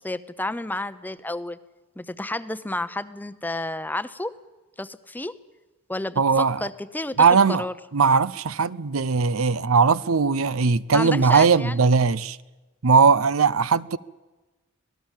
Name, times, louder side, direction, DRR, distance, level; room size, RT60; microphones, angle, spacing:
voice 1, 0.0-1.6 2.0-4.3 4.8-5.3 5.9-7.2 7.6-7.7 10.9-11.8, left 2 dB, 10° left, 0.8 m, -31 dB
voice 2, 6.2-6.7 7.2-7.7 7.9-12.4 12.8-14.0, right 5 dB, 75° right, 0.7 m, -19 dB
26.0 x 18.5 x 7.4 m
head